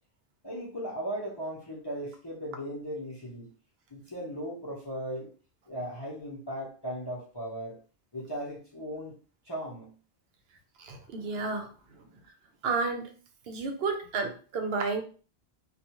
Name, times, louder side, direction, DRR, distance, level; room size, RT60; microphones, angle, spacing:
voice 1, 0.4-3.5 3.9-5.3 5.7-7.8 8.1-9.1 9.4-10.0, equal, 25° left, -6 dB, 0.7 m, -37 dB
voice 2, 10.8-12.1 12.6-13.0 13.5-15.0, right 4 dB, 70° right, 5 dB, 0.8 m, -31 dB
2.4 x 2.3 x 2.9 m, 0.38 s
omnidirectional pair, 1.1 m